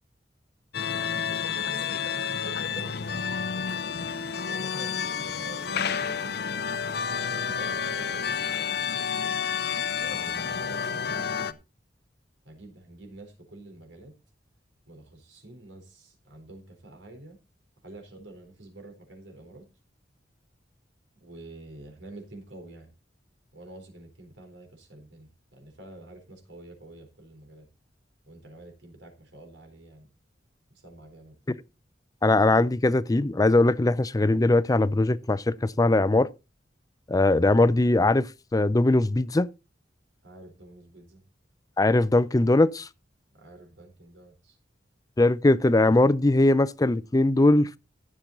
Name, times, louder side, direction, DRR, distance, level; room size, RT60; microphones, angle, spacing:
sound 1, 0.7-11.5, left 6 dB, 60° left, 0.8 m, -30 dB
voice 1, 0.9-3.4 4.4-6.4 7.2-9.4 9.9-11.6 12.4-14.1 14.9-17.4 17.8-19.7 21.2-22.9 23.5-27.7 28.3-30.1 30.7-31.4 40.2-41.2 43.3-44.6, right 2 dB, 90° right, 4.2 m, -47 dB
voice 2, 32.2-36.3 37.1-39.5 41.8-42.9 45.2-47.8, left 2 dB, 20° left, 0.5 m, -21 dB
14.5 x 7.5 x 4.0 m
head